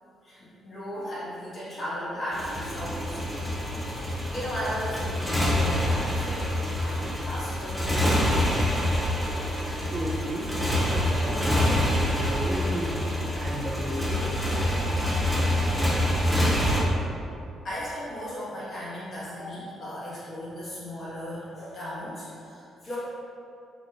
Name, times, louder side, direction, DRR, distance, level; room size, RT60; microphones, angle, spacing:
voice 1, 0.6-6.5 6.8-8.5 17.6-23.0, equal, 45° left, -9 dB, 1.4 m, -36 dB
Motorcycle, 2.3-16.8, left 1 dB, 5° left, 0.7 m, -26 dB
voice 2, 9.9-13.0 13.3-14.2, right 1 dB, 30° right, -2 dB, 0.4 m, -34 dB
3.6 x 3.0 x 2.5 m, 2.6 s
cardioid pair, 90°, 0 cm